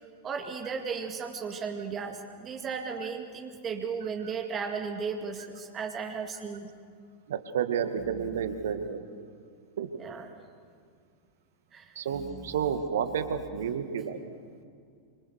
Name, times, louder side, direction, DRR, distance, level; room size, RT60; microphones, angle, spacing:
voice 1, 0.2-6.7 10.0-10.3 11.7-12.4, right 5 dB, 25° right, 4 dB, 2.2 m, -35 dB
voice 2, 7.3-9.0 9.8-9.9 12.0-14.2, right 7 dB, 60° right, 8 dB, 2.1 m, -31 dB
27.5 x 26.0 x 6.7 m, 2.3 s
figure-of-eight pair, 90°, 0 cm